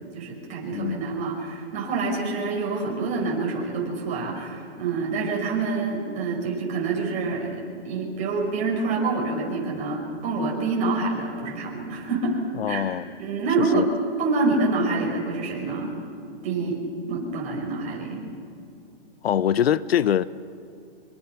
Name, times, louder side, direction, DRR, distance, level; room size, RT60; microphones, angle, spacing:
voice 1, 0.1-12.4 12.7-12.9 13.2-13.9 14.2-16.0 16.4-16.8 17.1-18.3, right 3 dB, 25° right, 5.7 m, -27 dB
voice 2, 0.7-1.2 12.6-13.1 13.6-13.9 19.2-20.3, left 10 dB, 75° left, 0.7 m, -23 dB
25.0 x 24.0 x 6.0 m
hypercardioid pair, 155°, 31 cm